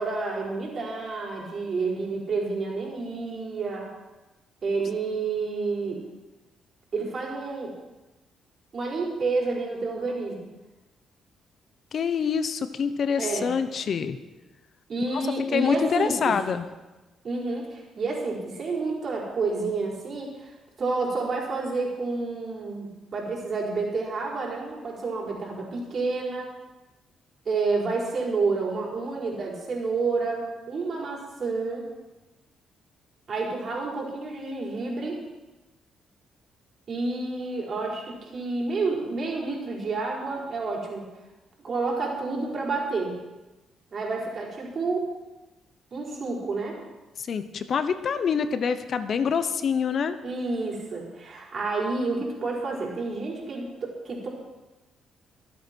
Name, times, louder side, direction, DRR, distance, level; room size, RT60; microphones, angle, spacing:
voice 1, 0.0-3.9 4.6-6.0 6.9-7.7 8.7-10.5 13.2-13.5 14.9-16.3 17.2-26.5 27.4-31.8 33.3-35.2 36.9-41.1 41.6-43.1 43.9-45.1 45.9-46.8 50.2-54.3, right 3 dB, 50° right, -2 dB, 4.8 m, -29 dB
voice 2, 11.9-14.2 15.5-16.7 47.2-50.2, left 6 dB, 55° left, 11 dB, 0.9 m, -26 dB
24.5 x 8.3 x 4.6 m, 1.1 s
cardioid pair, 90°, 0 cm